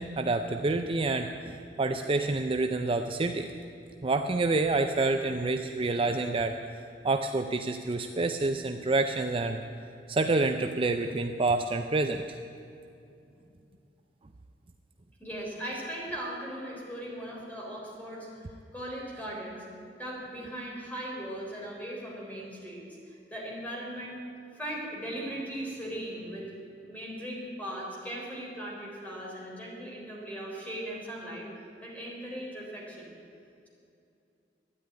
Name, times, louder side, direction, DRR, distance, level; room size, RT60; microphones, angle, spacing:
voice 1, 0.0-3.5 4.0-6.6 7.0-9.7 10.1-12.4, right 3 dB, 30° right, 6 dB, 0.5 m, -28 dB
voice 2, 15.2-19.6 20.0-24.2 24.5-26.5 26.8-31.5 31.8-33.1, right 1 dB, 10° left, -3 dB, 4.0 m, -38 dB
13.0 x 9.9 x 10.0 m, 2.6 s
head